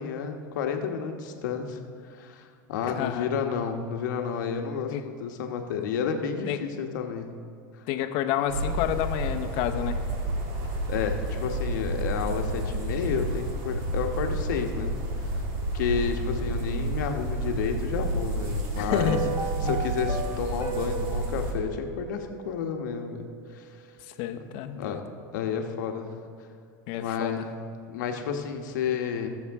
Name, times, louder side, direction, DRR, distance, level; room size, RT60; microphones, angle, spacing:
voice 1, 0.0-7.3 10.9-15.4 15.7-19.2 19.6-23.8 24.8-25.0 25.3-26.2 27.0-27.4 27.9-29.3, left 6 dB, 80° left, 4 dB, 1.2 m, -31 dB
voice 2, 2.9-3.3 4.9-5.1 6.5-6.6 7.9-10.0 18.8-19.3 19.6-19.7 24.2-25.0 26.9-27.5, left 11 dB, 65° left, 7 dB, 0.9 m, -29 dB
sound 1, 8.5-21.5, right 1 dB, 65° right, 2.3 m, -30 dB
sound 2, 18.9-23.2 23.4-23.5, right 7 dB, 30° right, 1.1 m, -35 dB
19.5 x 7.2 x 3.6 m, 2.2 s
supercardioid pair, 105°, 10 cm